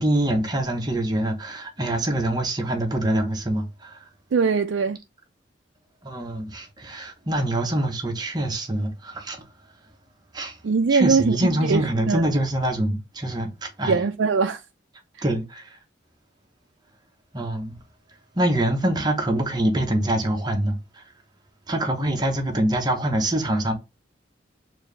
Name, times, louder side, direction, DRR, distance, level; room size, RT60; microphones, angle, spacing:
voice 1, 0.0-4.0 6.0-9.4 10.3-10.5 10.9-14.0 15.2-15.6 17.3-17.7 18.4-20.8 21.7-23.7, right 1 dB, 20° right, 0.9 m, -24 dB
voice 2, 4.3-5.0 10.6-12.2 13.9-14.6, right 5 dB, 75° right, 0.4 m, -21 dB
4.4 x 2.7 x 3.2 m
head